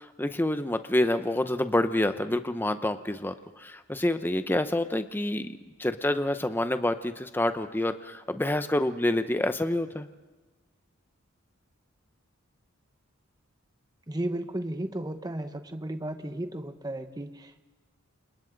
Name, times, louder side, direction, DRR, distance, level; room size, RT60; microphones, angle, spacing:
voice 1, 0.0-10.1, left 1 dB, 10° left, 9 dB, 0.7 m, -27 dB
voice 2, 14.1-17.6, right 1 dB, 20° right, 8 dB, 1.0 m, -34 dB
29.5 x 27.5 x 4.0 m, 1.2 s
head